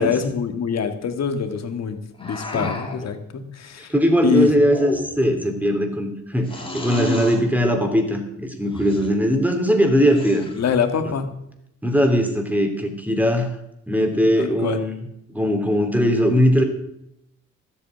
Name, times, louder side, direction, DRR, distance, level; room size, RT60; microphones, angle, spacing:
voice 1, 0.0-3.9 4.2-4.5 10.6-11.3 14.4-14.8, left 7 dB, 60° left, 8 dB, 1.9 m, -24 dB
sound 1, 2.2-3.1 4.6-5.3 6.5-7.4 8.7-9.1 10.0-10.8, left 2 dB, 20° left, 3.6 m, -32 dB
voice 2, 3.9-6.5 6.7-10.5 11.0-11.1 11.8-13.5 13.9-15.0 15.3-16.6, equal, 5° right, 5 dB, 2.9 m, -20 dB
13.0 x 8.5 x 7.9 m, 0.81 s
cardioid pair, 90°, 30 cm